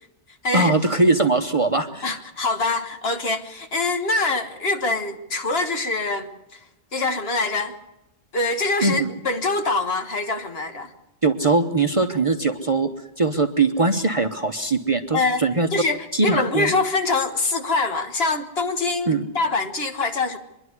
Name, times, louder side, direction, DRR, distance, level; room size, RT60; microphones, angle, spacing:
voice 1, 0.5-2.1 8.8-9.1 11.2-12.9 13.2-15.7 16.1-16.7 19.1-19.2, right 3 dB, 30° right, 0.8 m, -21 dB
voice 2, 2.0-6.6 6.9-7.7 8.3-10.9 15.1-15.4 15.7-20.4, left 3 dB, 55° left, 1.6 m, -24 dB
24.0 x 11.0 x 9.6 m
omnidirectional pair, 1.3 m